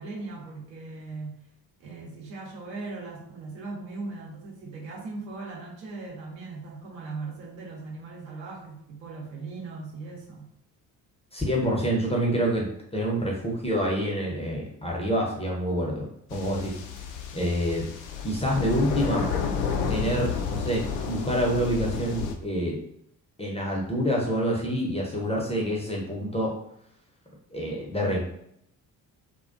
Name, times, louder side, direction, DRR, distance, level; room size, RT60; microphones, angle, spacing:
voice 1, 0.0-1.4 1.8-10.5, right 3 dB, 70° right, -2 dB, 0.9 m, -39 dB
voice 2, 11.3-16.8 17.3-17.9 18.2-19.3 19.9-22.8 23.4-26.5 27.5-28.2, equal, 10° left, -2 dB, 0.6 m, -27 dB
sound 1, 16.3-22.4, left 6 dB, 65° left, 0.5 m, -31 dB
2.3 x 2.2 x 2.4 m, 0.73 s
figure-of-eight pair, 45°, 50 cm